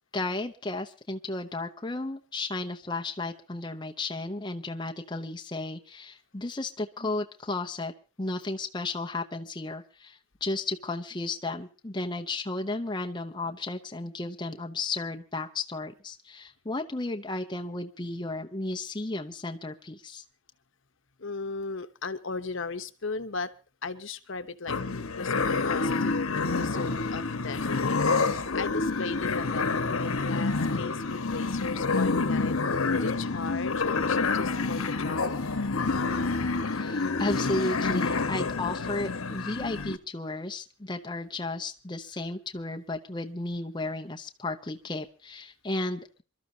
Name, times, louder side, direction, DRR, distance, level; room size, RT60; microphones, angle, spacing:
voice 1, 0.1-7.9 8.2-20.2 36.7-46.2, left 2 dB, 20° left, 5 dB, 0.7 m, -34 dB
voice 2, 21.2-23.5 23.8-24.8 25.1-32.5 32.9-35.4, left 4 dB, 65° left, 10 dB, 1.0 m, -37 dB
sound 1, 24.7-40.0, left 4 dB, 85° left, 1.2 m, -28 dB
27.5 x 12.5 x 2.8 m, 0.33 s
head